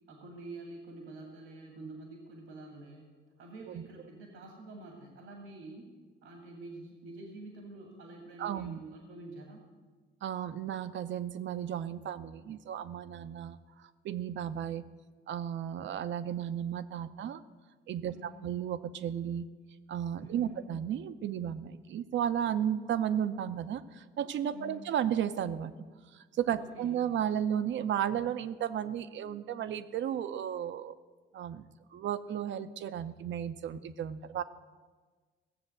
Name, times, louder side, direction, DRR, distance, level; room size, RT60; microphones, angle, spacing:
voice 1, 0.1-3.1 3.4-5.9 6.2-9.6 18.0-18.4 20.2-20.6 24.5-24.8 26.6-27.1, right 2 dB, 90° right, 2 dB, 2.2 m, -47 dB
voice 2, 8.4-8.8 10.2-14.8 15.3-17.4 17.9-19.5 19.9-25.7 26.1-30.9 31.3-31.6 31.9-34.4, right 9 dB, 70° right, 12 dB, 0.7 m, -34 dB
16.5 x 7.2 x 7.8 m, 1.4 s
cardioid pair, 90°, 20 cm